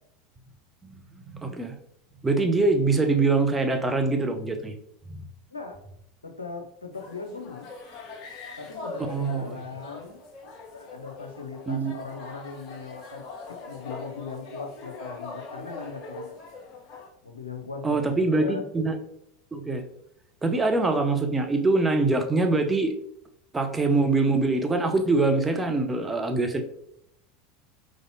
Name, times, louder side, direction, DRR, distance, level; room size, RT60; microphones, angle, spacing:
voice 1, 1.3-1.8 2.2-4.8 5.1-5.2 9.1-9.6 11.7-11.9 17.8-19.0 19.5-19.8 20.4-22.9 23.5-26.6, right 3 dB, 15° right, 5 dB, 0.7 m, -24 dB
voice 2, 6.2-7.7 8.6-10.2 10.7-16.4 17.2-18.6, left 4 dB, 80° left, 4 dB, 0.6 m, -39 dB
sound 1, 6.9-17.1, left 3 dB, 40° left, 1.1 m, -42 dB
4.6 x 4.0 x 2.8 m, 0.73 s
figure-of-eight pair, 80°, 0 cm